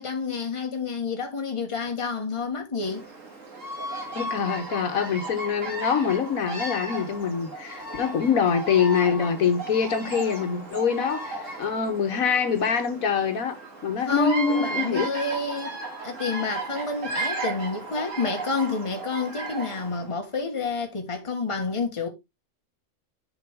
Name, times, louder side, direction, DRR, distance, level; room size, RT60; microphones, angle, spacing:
voice 1, 0.0-3.0 14.0-22.1, left 4 dB, 20° left, 1.4 m, -29 dB
Bird vocalization bird call bird song, 2.8-20.1, right 2 dB, 60° right, 2.7 m, -35 dB
voice 2, 4.1-13.6 13.8-15.1, left 6 dB, 70° left, 1.4 m, -25 dB
7.4 x 5.1 x 3.5 m
omnidirectional pair, 1.5 m